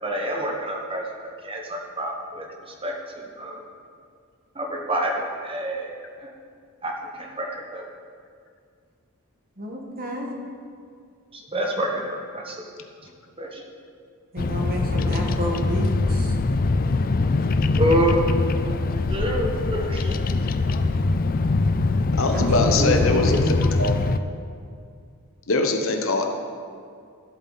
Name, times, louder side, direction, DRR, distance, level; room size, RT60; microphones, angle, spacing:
voice 1, 0.0-3.6 4.5-5.9 6.2-6.3 6.8-7.8 11.3-12.6 13.0-13.1 13.4-13.6 17.8-18.2 19.1-20.2, right 1 dB, 25° right, 0 dB, 1.3 m, -28 dB
voice 2, 9.6-10.3 14.3-16.3 22.3-23.6, right 1 dB, 40° right, 0 dB, 1.5 m, -29 dB
Bird vocalization bird call bird song, 14.4-24.2, left 3 dB, 40° left, 0.4 m, -23 dB
voice 3, 22.2-24.1 25.5-26.3, left 2 dB, 65° left, 4 dB, 1.0 m, -23 dB
14.5 x 8.1 x 4.1 m, 2.2 s
head